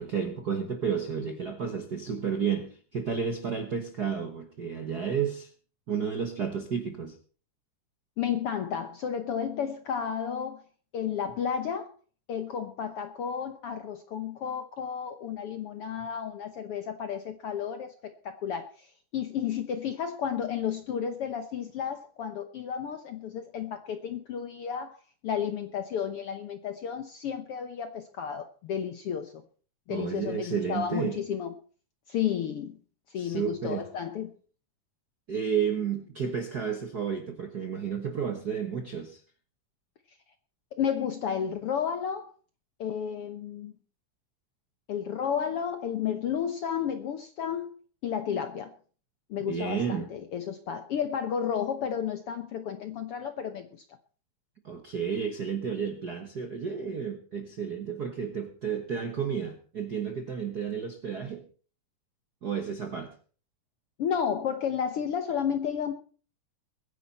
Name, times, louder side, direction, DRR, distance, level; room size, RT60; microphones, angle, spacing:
voice 1, 0.0-5.5 5.9-7.2 29.9-31.2 33.1-33.8 35.3-39.2 49.4-50.1 54.6-61.4 62.4-63.1, right 7 dB, 55° right, 1.1 m, -31 dB
voice 2, 8.2-10.6 10.9-11.9 12.3-25.0 25.2-29.4 29.9-31.5 32.1-32.8 33.1-34.3 40.8-42.3 42.8-43.7 44.9-47.7 48.0-48.7 49.3-53.8 64.0-65.9, left 8 dB, 65° left, 1.5 m, -32 dB
22.0 x 10.0 x 4.2 m
omnidirectional pair, 3.7 m